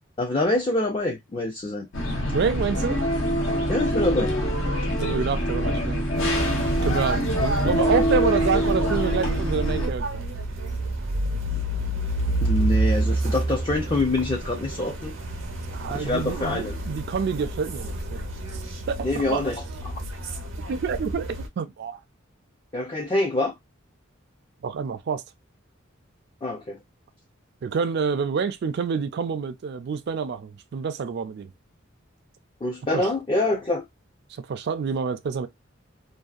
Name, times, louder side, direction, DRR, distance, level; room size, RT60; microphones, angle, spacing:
voice 1, 0.2-1.9 3.7-4.3 7.5-7.7 12.4-15.1 15.9-16.8 19.0-19.5 19.8-19.9 22.7-23.5 26.4-26.8 32.6-33.8, left 2 dB, 25° left, 0.4 m, -25 dB
sound 1, 1.9-9.9, equal, 80° left, 0.8 m, -24 dB
voice 2, 2.3-3.0 5.0-6.1 6.8-10.2 15.7-19.4 20.7-22.0 24.6-25.2 27.6-31.5 32.9-33.1 34.3-35.5, right 5 dB, 55° right, 0.3 m, -27 dB
sound 2, 6.1-21.5, right 2 dB, 90° right, 0.7 m, -29 dB
2.6 x 2.3 x 2.3 m
head